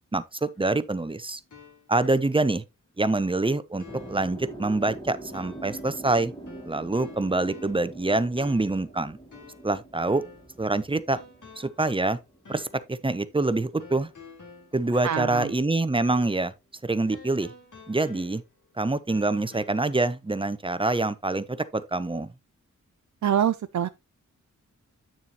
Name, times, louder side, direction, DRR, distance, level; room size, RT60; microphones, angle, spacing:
voice 1, 0.1-1.4 1.9-2.6 3.0-6.3 6.7-9.2 9.6-10.2 10.6-11.2 11.6-12.2 12.5-14.1 14.7-16.5 16.8-17.5 17.9-18.4 18.8-22.3, right 2 dB, 15° right, 0.7 m, -26 dB
sound 1, 0.5-2.6 3.0-3.1 3.8-4.3 5.3-6.1 6.5-8.0 8.4-8.8 9.3-10.6 11.1-11.9 12.4-12.9 13.8-15.8 16.1-16.5 17.1-18.6 19.1-19.7, left 4 dB, 70° left, 3.5 m, -49 dB
sound 2, 3.9-14.0 14.2-15.9, right 2 dB, 15° left, 2.0 m, -44 dB
voice 2, 14.9-15.5 23.2-23.9, right 9 dB, 65° right, 0.5 m, -25 dB
9.0 x 6.7 x 2.9 m
wide cardioid pair, 90°, 32 cm